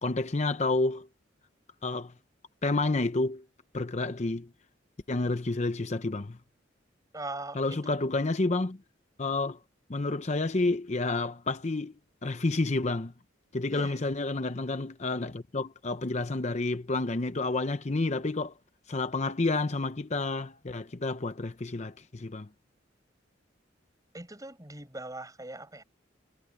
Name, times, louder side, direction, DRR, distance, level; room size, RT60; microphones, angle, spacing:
voice 1, 0.0-1.1 1.8-2.1 2.6-3.4 3.7-4.5 5.1-6.4 7.5-8.8 9.2-9.6 9.9-11.9 12.2-13.1 13.5-18.5 18.9-22.5, left 2 dB, 35° left, 0.7 m, -29 dB
voice 2, 7.1-8.0 13.7-14.0 24.1-25.8, right 2 dB, 20° right, 6.3 m, -41 dB
head